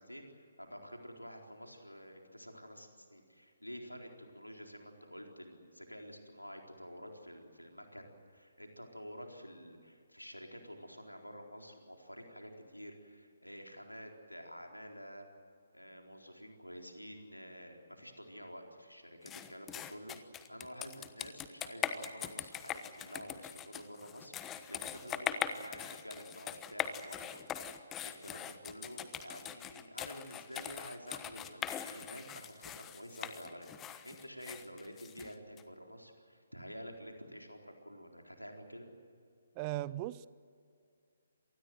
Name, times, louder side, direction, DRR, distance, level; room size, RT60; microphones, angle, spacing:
voice 1, 0.0-15.3 15.7-20.2 20.5-27.4 28.0-38.9, equal, 90° left, 4.2 m, -49 dB
sound 1, 19.3-35.6, left 9 dB, 15° left, 1.1 m, -41 dB
voice 2, 39.6-40.3, right 16 dB, 25° right, 0.6 m, -37 dB
27.0 x 19.5 x 7.8 m
figure-of-eight pair, 135°, 0 cm